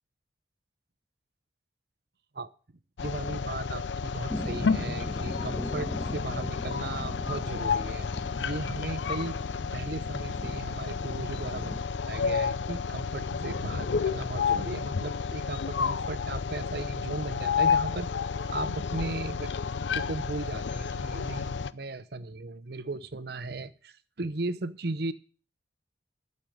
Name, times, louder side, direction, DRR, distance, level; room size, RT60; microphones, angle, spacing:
sound 1, 3.0-21.7, left 5 dB, 75° left, 0.5 m, -31 dB
voice 1, 3.0-8.1 8.4-9.4 9.7-11.7 12.1-18.1 18.4-19.5 19.9-25.1, right 3 dB, 60° right, 14 dB, 0.8 m, -36 dB
sound 2, 4.3-11.8, equal, 10° left, 1.2 m, -40 dB
12.0 x 6.6 x 7.8 m, 0.39 s
head